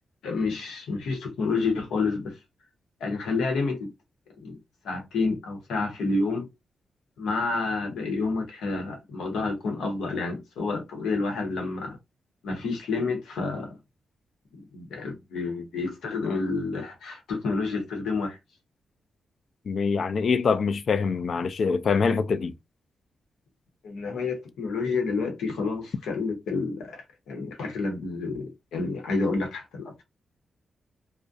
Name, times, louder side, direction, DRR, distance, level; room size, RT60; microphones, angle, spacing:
voice 1, 0.2-2.4 3.0-3.9 4.4-4.6 4.8-6.5 7.2-12.0 12.4-13.7 14.7-18.4 23.8-30.0, left 3 dB, 90° left, 0.9 m, -29 dB
voice 2, 19.7-22.5, left 5 dB, 60° left, 0.3 m, -24 dB
2.3 x 2.1 x 2.6 m
cardioid pair, 65°, 0 cm